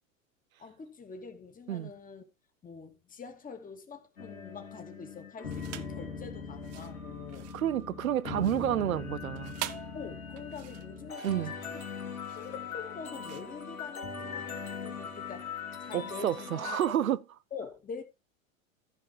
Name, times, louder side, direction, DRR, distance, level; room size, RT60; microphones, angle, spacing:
voice 1, 0.6-2.2 2.6-7.5 9.9-11.8 12.4-17.0 17.5-18.0, left 5 dB, 20° left, 2.4 m, -45 dB
sound 1, 4.2-16.9, left 6 dB, 90° left, 3.3 m, -41 dB
sound 2, 5.5-6.0 6.5-14.4, right 16 dB, 35° right, 0.8 m, -45 dB
voice 2, 7.5-9.5 11.2-11.5 15.9-17.2, right 11 dB, 85° right, 0.7 m, -30 dB
14.5 x 5.2 x 4.6 m
hypercardioid pair, 95°, 41 cm